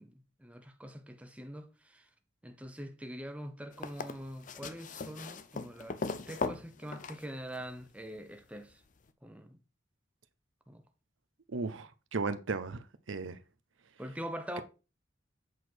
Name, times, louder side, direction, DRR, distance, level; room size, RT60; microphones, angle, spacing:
voice 1, 0.0-2.1 2.4-6.0 6.3-8.8 9.2-9.6 10.7-10.8 14.0-14.6, equal, 5° right, 0.9 m, -44 dB
sound 1, 3.7-7.8 9.1-9.2, left 3 dB, 40° left, 0.6 m, -39 dB
voice 2, 11.5-13.4, right 4 dB, 75° right, 0.7 m, -36 dB
8.1 x 4.6 x 4.5 m
head